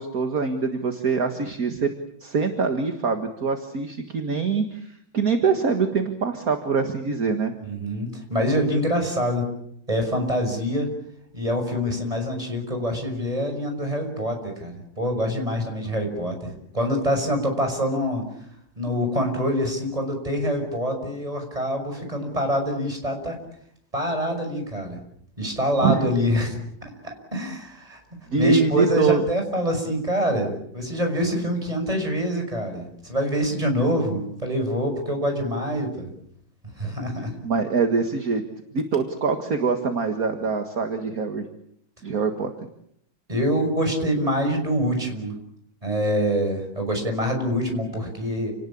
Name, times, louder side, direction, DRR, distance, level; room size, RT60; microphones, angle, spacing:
voice 1, 0.0-1.9 2.2-7.5 25.8-26.1 28.3-29.2 37.4-38.4 38.7-41.5 42.0-42.7, right 5 dB, 50° right, 5 dB, 2.2 m, -24 dB
voice 2, 7.6-9.5 9.9-10.9 11.3-18.3 18.8-23.3 23.9-25.0 25.4-28.0 28.4-36.1 36.8-37.4 43.3-45.4 45.8-48.5, equal, 20° right, 4 dB, 6.1 m, -25 dB
29.0 x 19.0 x 8.7 m, 0.71 s
omnidirectional pair, 2.0 m